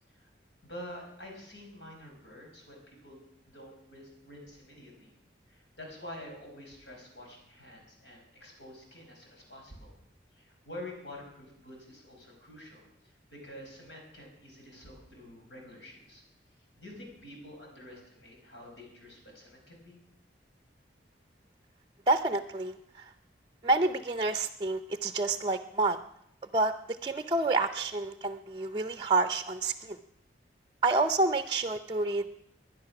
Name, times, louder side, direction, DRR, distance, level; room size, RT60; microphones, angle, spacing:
voice 1, 0.6-5.1 5.5-9.9 10.3-16.2 16.8-20.0, left 1 dB, 80° left, 0 dB, 5.4 m, -48 dB
voice 2, 22.1-23.0 23.6-26.0 26.5-26.7 27.0-30.0 30.8-32.4, right 3 dB, 25° right, 9 dB, 0.5 m, -28 dB
21.0 x 10.5 x 5.9 m, 0.78 s
head